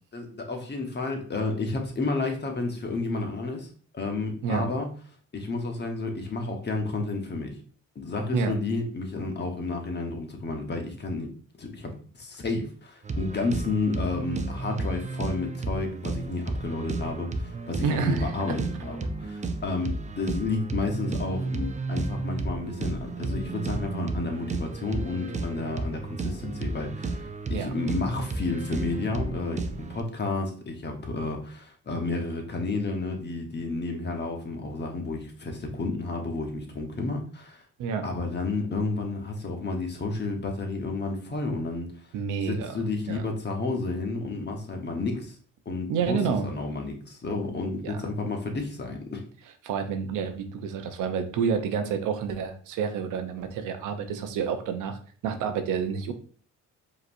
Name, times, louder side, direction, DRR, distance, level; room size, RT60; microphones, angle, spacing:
voice 1, 0.1-4.9 5.3-7.6 7.9-11.3 11.6-37.6 38.0-41.9 42.4-45.4 45.6-49.2, left 3 dB, 35° left, 3 dB, 1.1 m, -31 dB
sound 1, 13.0-30.0, right 3 dB, 25° right, 0.5 m, -33 dB
voice 2, 17.8-18.3 27.5-27.7 37.8-38.1 42.1-42.8 43.1-43.3 45.9-46.5 47.8-48.0 49.6-55.0 55.2-56.1, right 6 dB, 85° right, 7 dB, 0.7 m, -29 dB
4.9 x 3.0 x 2.6 m, 0.42 s
cardioid pair, 90°, 30 cm